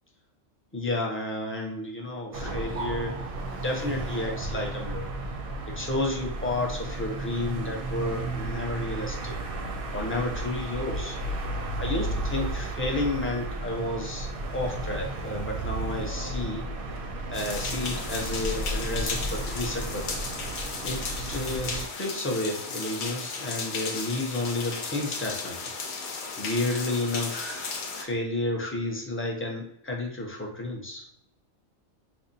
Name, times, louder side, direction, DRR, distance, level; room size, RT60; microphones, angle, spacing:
voice 1, 0.7-3.1 3.6-5.1 5.7-9.4 9.9-11.2 11.8-12.1 12.3-16.7 17.3-20.2 20.8-21.0 21.3-25.7 26.4-31.0, left 2 dB, 20° left, -1 dB, 0.4 m, -31 dB
sound 1, 2.3-21.9, right 2 dB, 60° right, 0.6 m, -33 dB
sound 2, 17.3-28.0, left 4 dB, 65° left, 0.9 m, -35 dB
5.2 x 2.0 x 2.6 m, 0.74 s
omnidirectional pair, 1.3 m